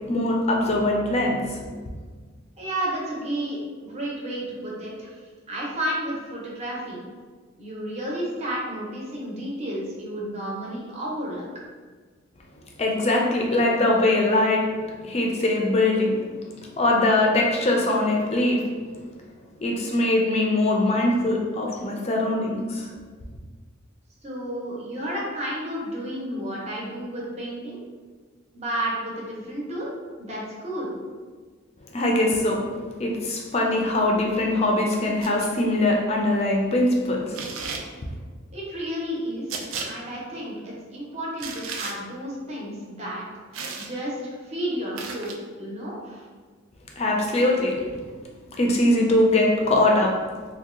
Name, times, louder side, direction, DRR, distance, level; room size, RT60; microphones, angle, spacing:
voice 1, 0.0-1.7 12.8-14.7 15.0-16.2 16.8-18.6 19.6-22.9 31.9-37.4 47.0-47.8 48.6-50.2, left 1 dB, 30° left, -1 dB, 0.4 m, -22 dB
voice 2, 2.6-5.2 5.5-7.0 7.6-11.4 24.2-27.8 28.5-29.9 30.2-31.0 38.5-39.5 39.8-43.2 43.8-46.2, right 1 dB, 30° right, -5 dB, 0.7 m, -32 dB
sound 1, 35.2-35.5 37.3-37.9 39.5-39.9 41.4-42.0 43.5-43.9 45.0-45.4, right 5 dB, 80° right, 0.4 m, -33 dB
2.7 x 2.2 x 3.6 m, 1.5 s
head